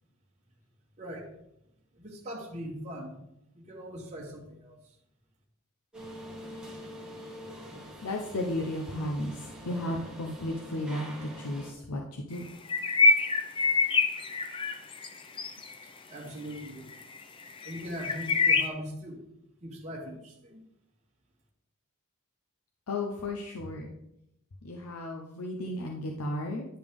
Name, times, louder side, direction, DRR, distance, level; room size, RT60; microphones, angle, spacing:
voice 1, 1.0-1.3 1.9-3.2 3.5-4.8 16.1-16.9 17.6-19.2 19.6-20.6, equal, 30° right, -2 dB, 1.1 m, -40 dB
sound 1, 5.9-11.7, equal, 5° right, 1.7 m, -45 dB
voice 2, 8.0-12.5 22.9-23.9 24.6-26.6, left 1 dB, 85° left, 1 dB, 0.8 m, -34 dB
sound 2, 12.6-15.1 15.4-15.8 16.6-16.7 16.9-17.2 17.6-18.7, left 3 dB, 25° left, 0.5 m, -25 dB
10.0 x 5.1 x 3.6 m, 0.81 s
head